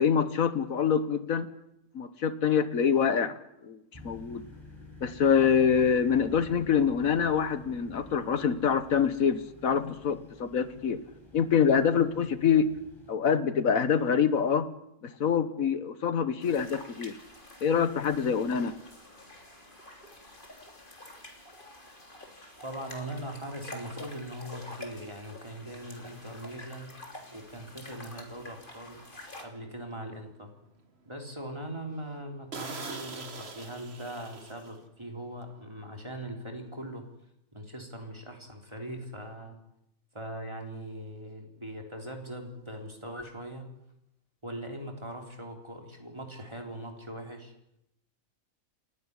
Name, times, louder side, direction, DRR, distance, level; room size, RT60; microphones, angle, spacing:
voice 1, 0.0-1.5 1.9-4.4 5.0-11.0 11.3-12.7 13.1-14.7 15.0-17.2 17.6-18.7, left 7 dB, 85° left, 12 dB, 1.6 m, -25 dB
sound 1, 3.9-13.1, left 3 dB, 20° left, 6.0 m, -50 dB
sound 2, 16.4-29.4, left 1 dB, 40° left, 3.4 m, -48 dB
voice 2, 22.6-26.9 27.3-29.0 29.4-30.5 31.1-37.0 37.5-39.6 40.1-43.6 44.4-47.5, right 1 dB, 20° right, 2 dB, 3.7 m, -40 dB
sound 3, 27.3-27.4 27.9-28.2 28.7-28.8 29.1-29.2 29.7-30.3 30.7-30.8 31.2-31.3 31.6-31.7 32.1-32.2 32.5-35.1 35.3-35.5, right 4 dB, 50° right, 2.0 m, -42 dB
29.5 x 11.0 x 9.7 m, 0.83 s
omnidirectional pair, 1.4 m